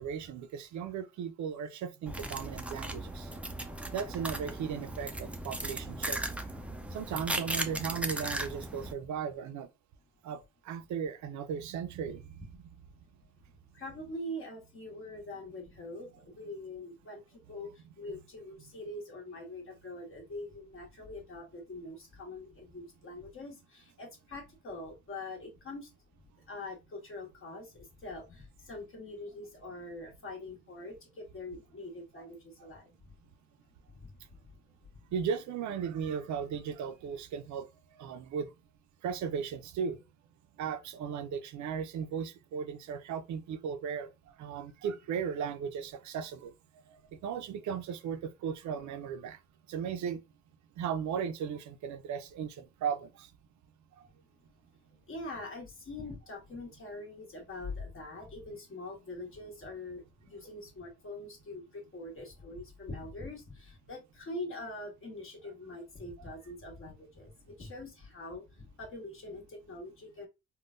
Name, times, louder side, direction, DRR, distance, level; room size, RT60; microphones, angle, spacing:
voice 1, 0.0-3.3 3.9-6.3 6.9-9.7 10.2-12.7 32.2-32.3 35.1-38.5 39.0-40.0 40.6-49.4 49.7-50.2 50.8-53.3 53.9-54.1, right 7 dB, 70° right, 0.5 m, -36 dB
sound 1, 2.1-8.9, right 1 dB, 5° right, 0.4 m, -37 dB
voice 2, 13.7-25.9 26.5-32.9 33.9-34.1 55.1-70.3, left 2 dB, 45° left, 1.4 m, -44 dB
3.6 x 2.2 x 2.5 m
cardioid pair, 90°, 30 cm